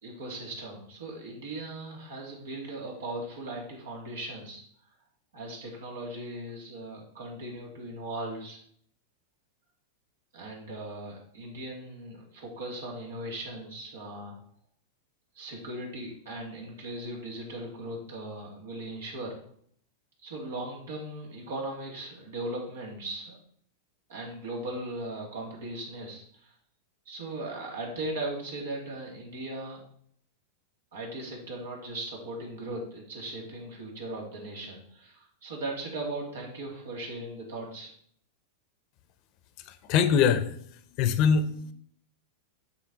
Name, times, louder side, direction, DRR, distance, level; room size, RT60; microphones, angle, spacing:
voice 1, 0.0-4.6 5.3-8.6 10.3-14.3 15.3-19.4 20.2-23.4 24.1-26.5 27.1-29.8 30.9-37.9, right 1 dB, 80° right, -2 dB, 3.0 m, -38 dB
voice 2, 39.7-40.6 40.9-41.7, left 7 dB, 50° left, 12 dB, 0.8 m, -23 dB
7.9 x 5.9 x 4.1 m, 0.62 s
hypercardioid pair, 110°, 0 cm